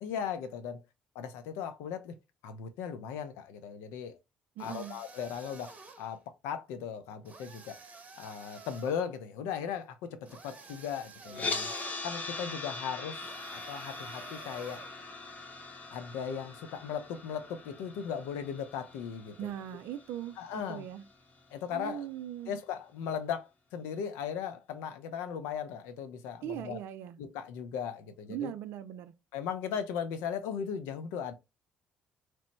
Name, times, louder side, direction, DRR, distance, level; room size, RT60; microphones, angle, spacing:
voice 1, 0.0-0.8 1.2-2.2 2.4-4.2 4.6-7.8 8.2-11.7 12.0-13.3 13.5-14.9 15.9-19.5 20.4-20.9 21.5-22.1 22.5-26.8 27.2-28.5 29.3-31.3, left 7 dB, 70° left, 0.5 m, -37 dB
sound 1, 4.6-6.2 7.2-9.0 10.3-12.1 13.2-15.0, right 4 dB, 35° right, 0.7 m, -51 dB
voice 2, 4.6-5.0 19.4-21.0 21.7-22.6 26.4-27.2 28.3-29.1, right 11 dB, 65° right, 0.4 m, -40 dB
sound 2, 11.3-21.4, left 3 dB, 35° left, 0.7 m, -41 dB
2.9 x 2.0 x 3.0 m
hypercardioid pair, 50°, 4 cm